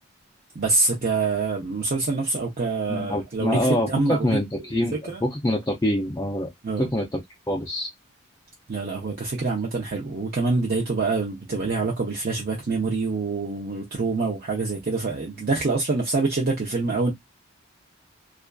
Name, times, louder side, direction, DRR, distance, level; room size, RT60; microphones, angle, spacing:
voice 1, 0.5-4.4 4.6-5.2 6.6-6.9 8.7-17.1, right 3 dB, 45° right, 0.6 m, -25 dB
voice 2, 2.9-4.9 5.2-6.5 6.8-7.2 7.5-7.9, left 1 dB, 15° left, 0.4 m, -25 dB
2.4 x 2.3 x 2.2 m
head